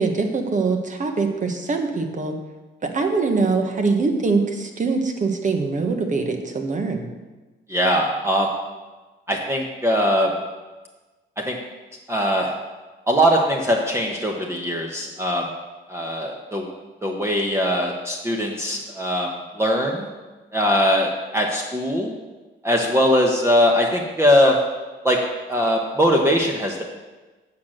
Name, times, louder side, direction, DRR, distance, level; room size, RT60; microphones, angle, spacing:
voice 1, 0.0-2.4 2.8-7.1, right 4 dB, 40° right, 5 dB, 1.4 m, -23 dB
voice 2, 7.7-8.5 9.3-10.3 11.4-11.6 12.1-12.5 13.1-15.4 15.9-16.7 17.0-20.1 20.5-22.1 22.6-24.6 25.0-25.2 25.5-26.8, equal, 15° right, 0 dB, 1.2 m, -21 dB
8.5 x 5.9 x 6.5 m, 1.2 s
cardioid pair, 90°, 20 cm